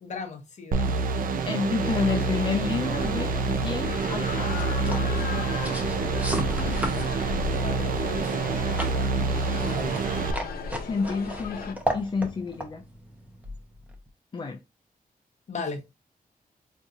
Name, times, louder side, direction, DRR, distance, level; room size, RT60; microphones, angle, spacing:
voice 1, 0.0-1.0 6.7-10.2 15.5-15.8, left 4 dB, 50° left, 0.8 m, -39 dB
sound 1, 0.7-10.3, right 4 dB, 65° right, 0.4 m, -27 dB
voice 2, 1.4-5.3 10.8-12.8 14.3-14.6, left 4 dB, 30° left, 0.4 m, -30 dB
sound 2, 1.8-11.7, left 5 dB, 80° left, 0.7 m, -36 dB
sound 3, 4.5-14.1, equal, 10° right, 0.6 m, -36 dB
4.3 x 2.7 x 2.4 m
wide cardioid pair, 165°, 15 cm